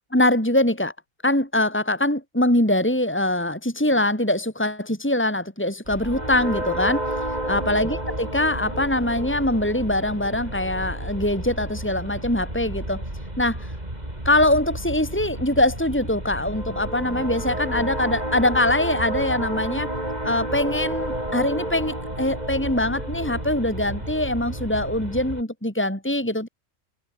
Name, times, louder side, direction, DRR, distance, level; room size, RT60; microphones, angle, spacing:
voice 1, 0.1-0.9 1.2-7.1 7.4-13.0 13.4-13.7 14.2-19.9 20.2-26.5, left 1 dB, 10° left, 3.9 m, -23 dB
sound 1, 5.9-25.4, right 1 dB, 30° right, 6.7 m, -31 dB
omnidirectional pair, 1.3 m